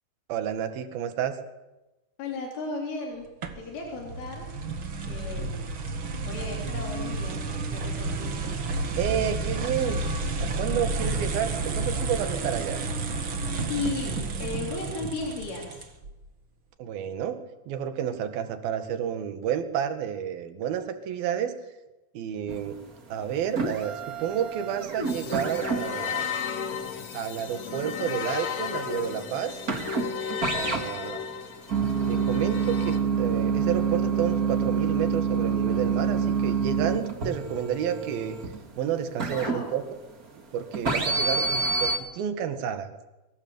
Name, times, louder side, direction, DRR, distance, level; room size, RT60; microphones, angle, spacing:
voice 1, 0.3-1.4 9.0-10.0 10.4-12.8 16.8-17.4 17.7-21.5 22.1-22.8 23.1-26.4 27.1-29.6 30.5-31.2 32.1-38.4 38.8-39.8 40.4-43.0, right 9 dB, 60° right, 8 dB, 3.1 m, -30 dB
voice 2, 2.2-3.3 3.6-4.5 5.0-5.7 6.2-8.6 13.3-13.4 13.7-15.9 39.3-39.7, left 3 dB, 85° left, -1 dB, 6.2 m, -35 dB
sound 1, 3.4-16.1, right 3 dB, 85° right, 1.1 m, -31 dB
sound 2, 22.5-22.9 23.2-40.3 40.7-42.0, right 5 dB, 40° right, 1.2 m, -27 dB
sound 3, 25.0-33.0, left 7 dB, 55° left, 1.9 m, -34 dB
24.5 x 22.0 x 8.0 m, 1.0 s
omnidirectional pair, 5.5 m